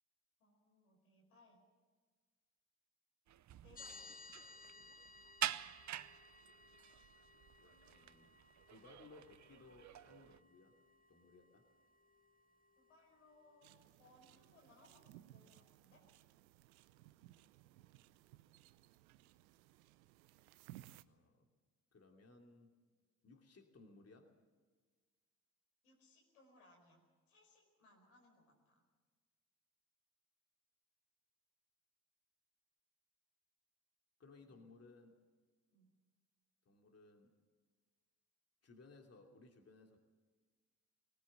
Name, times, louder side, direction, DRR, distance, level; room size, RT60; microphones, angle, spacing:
voice 1, 0.4-1.6 3.6-4.2 12.8-16.1 25.8-28.8 34.4-34.9 35.7-35.9, left 2 dB, 90° left, 1 dB, 5.0 m, -68 dB
sound 1, 3.3-10.4, right 11 dB, 45° right, 0.8 m, -47 dB
sound 2, 3.8-13.8, left 4 dB, 20° left, 1.6 m, -61 dB
voice 2, 7.6-8.3 8.7-10.8 11.1-11.7 21.1-21.5 21.9-22.7 23.2-24.3 34.2-35.1 36.6-37.3 38.6-40.0, left 3 dB, 35° left, 3 dB, 2.9 m, -62 dB
sound 3, 13.6-21.0, right 15 dB, 85° right, 0.7 m, -61 dB
20.5 x 19.0 x 7.6 m, 1.4 s
hypercardioid pair, 55°, 41 cm